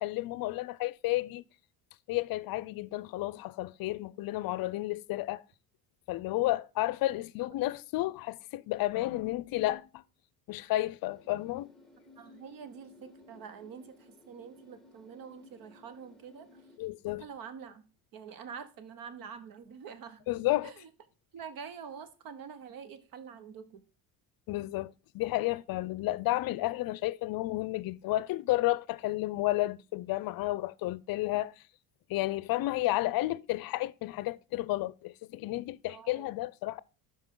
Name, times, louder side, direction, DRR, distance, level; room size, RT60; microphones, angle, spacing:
voice 1, 0.0-1.4 2.1-5.4 6.1-10.0 10.5-11.7 16.8-17.2 20.3-20.7 24.5-31.5 32.1-36.8, left 17 dB, 60° left, 0.6 m, -32 dB
sound 1, 11.0-16.8, left 2 dB, ahead, 1.7 m, -58 dB
voice 2, 12.2-16.7 17.2-17.8 18.1-20.2 20.6-20.9 21.3-23.8 35.9-36.3, right 6 dB, 60° right, 1.2 m, -46 dB
12.0 x 5.3 x 3.8 m
cardioid pair, 110°, 39 cm